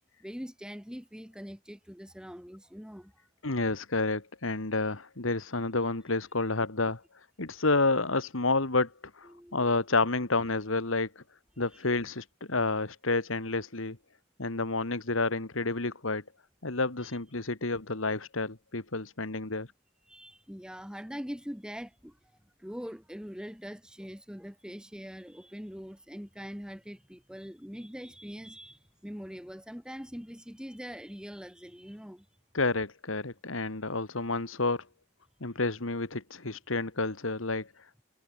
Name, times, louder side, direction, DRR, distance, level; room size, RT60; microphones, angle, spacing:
voice 1, 0.2-3.3 9.3-9.7 11.7-11.9 17.0-17.2 20.1-32.3, equal, 5° right, 1.9 m, -43 dB
voice 2, 3.4-7.0 7.4-11.2 11.6-14.0 14.4-16.2 16.6-19.7 32.5-34.9 35.4-38.0, left 3 dB, 75° left, 2.0 m, -30 dB
head